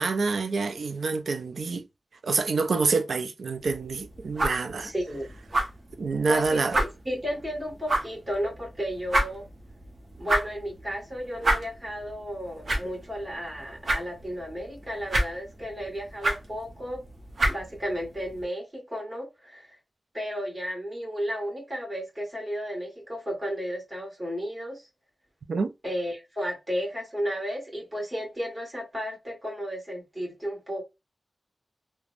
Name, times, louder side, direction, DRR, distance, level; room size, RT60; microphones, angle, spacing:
voice 1, 0.0-1.8 2.2-4.9 6.0-6.8 25.5-25.7, right 4 dB, 85° right, 0.3 m, -27 dB
sound 1, 3.6-18.4, right 1 dB, 65° right, 0.7 m, -32 dB
voice 2, 4.8-5.3 6.3-9.5 10.2-17.0 17.5-19.7 20.1-24.8 25.8-30.8, equal, 30° right, 1.4 m, -33 dB
3.1 x 2.1 x 2.4 m
cardioid pair, 50°, 0 cm